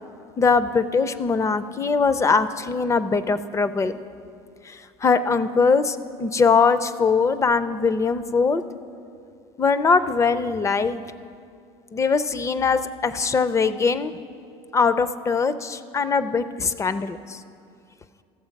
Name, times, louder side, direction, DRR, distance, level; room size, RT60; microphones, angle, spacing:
voice 1, 0.4-4.0 4.6-8.6 9.6-11.0 11.9-14.2 14.7-17.4, left 5 dB, 20° left, 13 dB, 0.4 m, -21 dB
14.5 x 6.9 x 5.2 m, 2.4 s
supercardioid pair, 105°, 14 cm